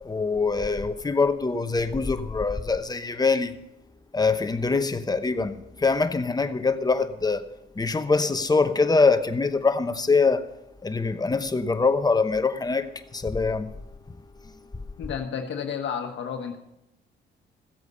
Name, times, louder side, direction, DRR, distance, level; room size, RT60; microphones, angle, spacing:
voice 1, 0.0-3.5 4.1-7.4 7.8-10.5 10.8-13.7, left 4 dB, 20° left, 0.9 m, -24 dB
voice 2, 15.0-16.6, left 7 dB, 65° left, 1.2 m, -31 dB
15.5 x 8.1 x 5.5 m
cardioid pair, 90°, 20 cm